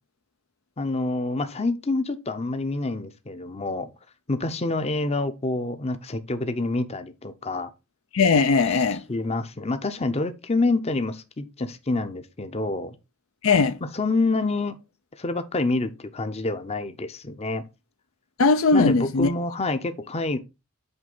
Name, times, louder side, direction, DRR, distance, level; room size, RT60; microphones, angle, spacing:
voice 1, 0.8-3.9 4.3-7.7 9.1-13.0 13.8-14.8 15.2-17.6 18.7-20.4, left 2 dB, 30° left, 0.7 m, -27 dB
voice 2, 8.1-9.0 13.4-13.8 18.4-19.3, left 4 dB, 65° left, 0.6 m, -19 dB
8.1 x 3.3 x 5.4 m
head